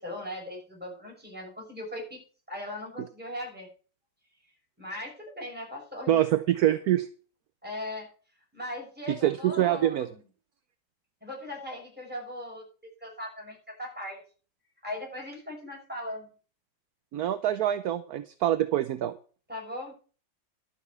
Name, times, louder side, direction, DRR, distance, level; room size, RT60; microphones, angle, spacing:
voice 1, 0.0-2.2 2.5-3.7 4.8-6.2 7.6-8.1 8.5-10.2 11.2-14.2 14.8-16.3 19.5-19.9, left 1 dB, 5° right, -2 dB, 6.2 m, -39 dB
voice 2, 6.1-7.1 9.2-10.1 17.1-19.1, right 12 dB, 65° right, 11 dB, 1.1 m, -25 dB
12.0 x 5.7 x 8.2 m, 0.39 s
omnidirectional pair, 2.0 m